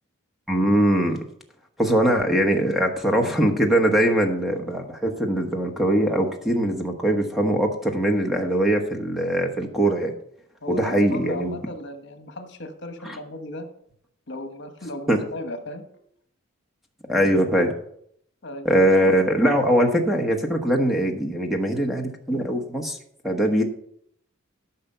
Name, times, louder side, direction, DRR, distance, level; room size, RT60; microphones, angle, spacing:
voice 1, 0.5-1.2 1.8-10.1 10.7-11.6 13.0-13.2 15.1-15.2 17.1-17.7 18.6-23.0 23.2-23.6, right 1 dB, ahead, 2 dB, 1.1 m, -21 dB
voice 2, 10.6-13.7 14.3-16.0 18.4-18.7, left 1 dB, 55° left, 7 dB, 1.2 m, -36 dB
13.0 x 5.8 x 5.5 m, 0.70 s
head